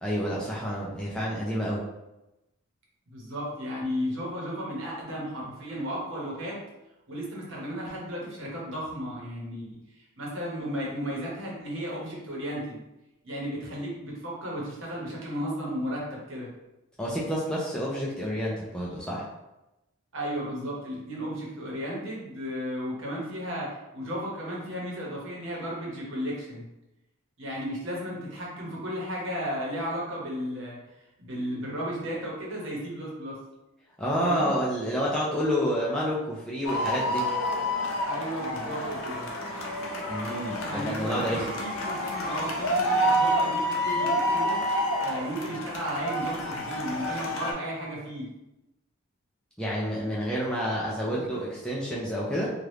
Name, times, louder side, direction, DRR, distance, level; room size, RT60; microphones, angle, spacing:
voice 1, 0.0-1.8 17.0-19.3 34.0-37.2 40.1-41.5 49.6-52.5, equal, 5° left, -6 dB, 0.4 m, -29 dB
voice 2, 3.1-6.6 7.1-9.8 10.2-12.8 13.2-16.5 20.1-26.7 27.4-30.8 31.2-33.4 34.2-34.5 38.0-39.3 40.6-44.5 45.0-48.3 51.1-51.2, equal, 60° right, -4 dB, 1.0 m, -34 dB
sound 1, 36.6-47.5, equal, 70° left, 0.6 m, -28 dB
2.9 x 2.4 x 3.3 m, 0.95 s
head